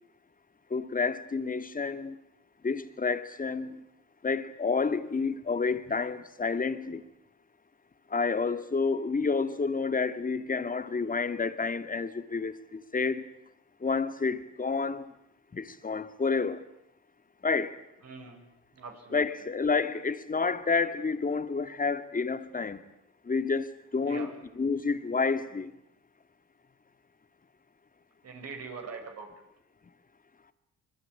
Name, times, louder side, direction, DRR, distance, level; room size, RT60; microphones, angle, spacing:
voice 1, 0.7-2.2 2.6-3.8 4.2-7.1 8.1-13.3 13.8-15.1 15.5-16.7 17.4-17.8 19.1-22.8 23.2-24.3 24.6-25.7, left 4 dB, 25° left, 2.2 m, -29 dB
voice 2, 18.0-18.5 18.7-19.2 24.0-24.4 28.2-29.3, right 5 dB, 55° right, 7.1 m, -42 dB
26.0 x 21.5 x 10.0 m
cardioid pair, 90°, 30 cm